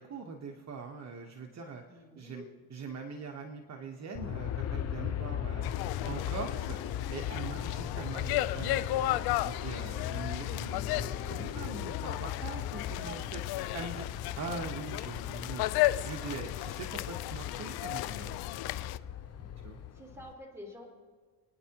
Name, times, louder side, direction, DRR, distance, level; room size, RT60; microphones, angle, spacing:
voice 1, 0.0-5.7 6.0-6.8 7.1-14.1 14.4-15.6 16.0-18.4 19.4-19.8, right 4 dB, 45° right, 3 dB, 1.2 m, -42 dB
voice 2, 1.9-2.5 19.9-20.9, left 1 dB, 5° right, -1 dB, 3.4 m, -48 dB
Aircraft, 4.2-20.3, left 10 dB, 45° left, 0.9 m, -38 dB
sound 1, 5.6-19.0, left 16 dB, 80° left, 0.5 m, -35 dB
28.5 x 9.7 x 2.9 m, 1.5 s
cardioid pair, 105°, 37 cm